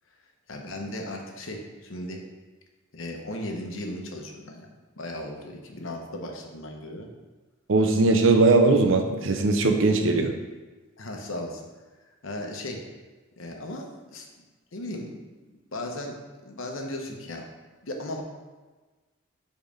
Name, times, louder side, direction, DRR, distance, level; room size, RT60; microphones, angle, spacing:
voice 1, 0.5-2.2 2.9-7.1 11.0-11.6 12.2-12.8 13.4-14.3 14.7-16.2 16.5-17.5 17.8-18.2, left 1 dB, 80° left, 2 dB, 1.0 m, -36 dB
voice 2, 7.7-10.3, right 3 dB, 70° right, 5 dB, 0.7 m, -20 dB
5.3 x 4.1 x 5.1 m, 1.3 s
head